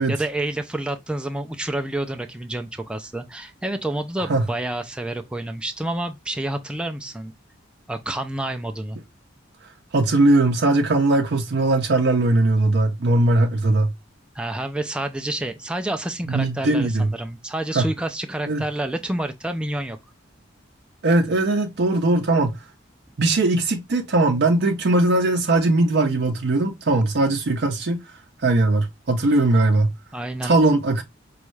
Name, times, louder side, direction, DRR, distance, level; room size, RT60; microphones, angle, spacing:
voice 1, 0.1-7.3 7.9-9.0 14.3-20.0 30.1-30.5, right 1 dB, 5° right, 0.3 m, -29 dB
voice 2, 9.9-14.0 16.3-17.1 17.7-17.8 18.5-18.6 21.0-22.6 23.2-30.0 30.4-31.0, right 2 dB, 55° right, 0.5 m, -20 dB
5.2 x 2.3 x 3.1 m
head